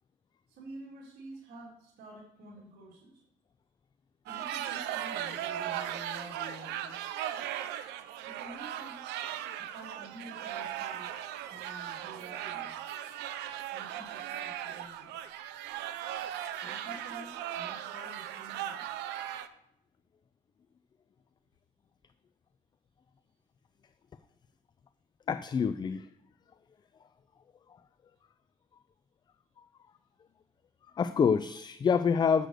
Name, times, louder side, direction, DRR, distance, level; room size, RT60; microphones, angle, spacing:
voice 1, 0.5-3.2 4.2-7.1 8.2-9.0 9.6-11.1 11.4-12.7 13.7-15.2 16.6-18.9, right 1 dB, 70° right, -5 dB, 3.1 m, -49 dB
sound 1, 4.3-19.5, right 11 dB, 90° right, 0.7 m, -38 dB
voice 2, 25.3-26.1 29.6-29.7 30.9-32.5, left 6 dB, 25° left, 13 dB, 0.4 m, -27 dB
7.6 x 6.5 x 6.6 m, 0.80 s
cardioid pair, 110°, 17 cm